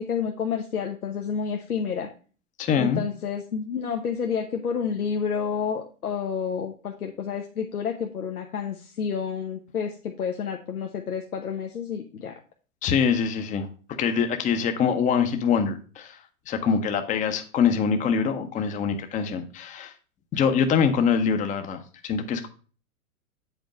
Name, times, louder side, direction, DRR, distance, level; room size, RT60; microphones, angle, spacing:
voice 1, 0.0-2.1 2.8-12.3, left 6 dB, 80° left, 3 dB, 1.1 m, -29 dB
voice 2, 2.6-3.0 12.8-13.7 14.0-16.2 16.5-19.9 20.3-22.5, left 6 dB, 15° left, 7 dB, 0.8 m, -24 dB
8.0 x 4.4 x 5.1 m, 0.38 s
hypercardioid pair, 110°, 44 cm